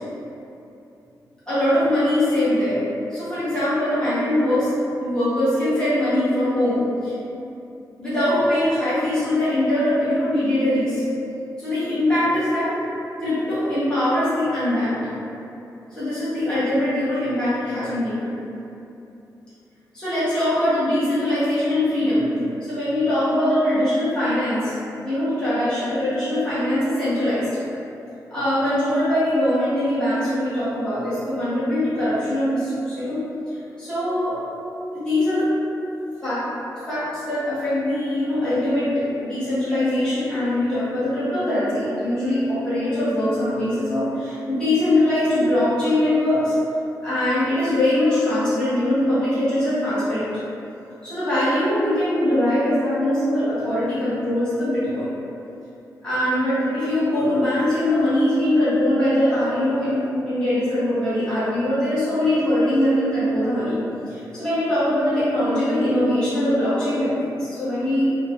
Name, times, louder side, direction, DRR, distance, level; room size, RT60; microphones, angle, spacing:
voice 1, 1.5-2.8 3.1-4.7 5.0-7.1 8.0-11.0 11.6-12.8 13.2-15.0 16.0-18.4 19.9-22.3 22.6-24.7 25.0-27.5 28.3-34.4 34.9-35.5 36.2-36.5 36.9-46.5 47.0-50.3 51.0-55.1 56.0-63.8 64.1-68.1, left 1 dB, 10° left, -15 dB, 1.2 m, -22 dB
3.3 x 2.1 x 2.6 m, 2.8 s
wide cardioid pair, 165°, 7 cm